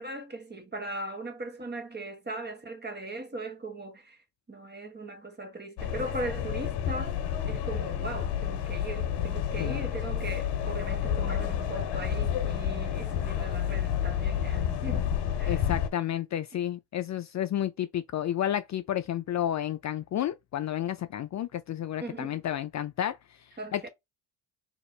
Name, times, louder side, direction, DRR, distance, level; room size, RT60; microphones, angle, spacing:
voice 1, 0.0-4.2 4.5-7.2 7.5-15.1 15.4-15.6 22.0-22.4 23.6-23.9, right 2 dB, 25° right, 1.4 m, -39 dB
sound 1, 5.8-15.9, left 9 dB, 70° left, 1.2 m, -30 dB
voice 2, 15.5-23.9, left 11 dB, 40° left, 0.4 m, -31 dB
3.0 x 2.9 x 4.4 m
supercardioid pair, 70°, 43 cm